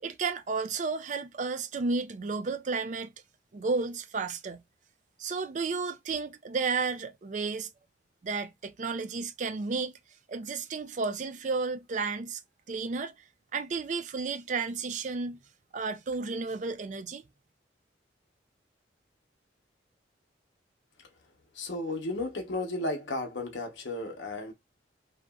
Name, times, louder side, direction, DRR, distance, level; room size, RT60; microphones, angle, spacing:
voice 1, 0.0-3.1 3.5-4.6 5.2-7.7 8.2-10.0 10.3-12.4 12.7-13.1 13.5-15.4 15.7-17.2, right 4 dB, 40° right, 0.3 m, -32 dB
voice 2, 21.5-24.5, left 2 dB, 75° left, 0.8 m, -34 dB
2.8 x 2.4 x 2.3 m
head